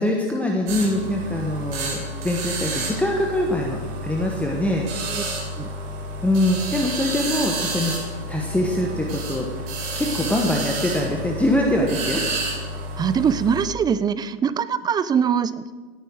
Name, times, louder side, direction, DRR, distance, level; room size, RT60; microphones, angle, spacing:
voice 1, 0.0-5.2 6.2-7.9 8.3-12.2, left 1 dB, 5° left, 0 dB, 1.2 m, -23 dB
sound 1, 0.7-13.7, right 2 dB, 50° right, 3.9 m, -30 dB
voice 2, 13.0-15.7, right 7 dB, 15° right, 16 dB, 0.4 m, -22 dB
17.0 x 9.3 x 4.7 m, 1.4 s
hypercardioid pair, 100°, 31 cm